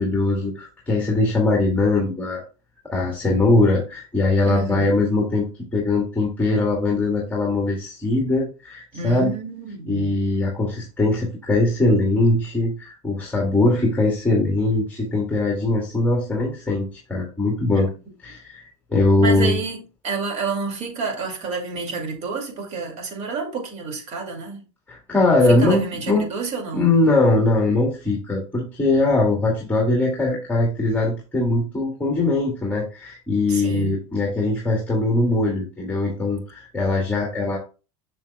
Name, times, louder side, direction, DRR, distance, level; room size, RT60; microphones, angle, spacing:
voice 1, 0.0-2.4 2.8-9.3 9.9-17.9 18.2-18.6 18.9-19.6 24.9-26.3 26.7-37.6, left 2 dB, 10° left, 2.3 m, -21 dB
voice 2, 4.5-5.0 8.9-10.2 17.7-17.9 19.2-24.6 25.5-27.0 33.5-34.0, right 4 dB, 40° right, 2.4 m, -29 dB
7.2 x 6.4 x 2.3 m
supercardioid pair, 105°, 17 cm